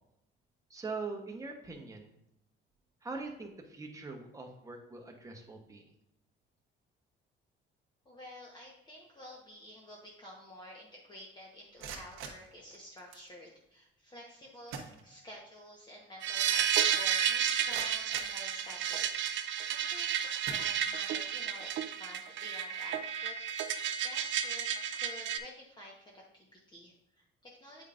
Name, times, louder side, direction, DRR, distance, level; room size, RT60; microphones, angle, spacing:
voice 1, 0.7-2.1 3.0-5.8, right 3 dB, 15° right, 2 dB, 1.0 m, -42 dB
voice 2, 8.0-23.4 23.7-27.8, equal, 20° left, -3 dB, 1.1 m, -51 dB
sound 1, 11.6-13.3 14.3-14.4 14.7-15.6 15.9-16.0 16.6-16.7 17.2-19.1 19.8-20.0 20.4-21.3, right 6 dB, 85° right, 1.1 m, -47 dB
sound 2, 16.2-25.4, right 9 dB, 65° right, 0.5 m, -32 dB
8.3 x 5.2 x 2.5 m, 0.81 s
cardioid pair, 125°, 21 cm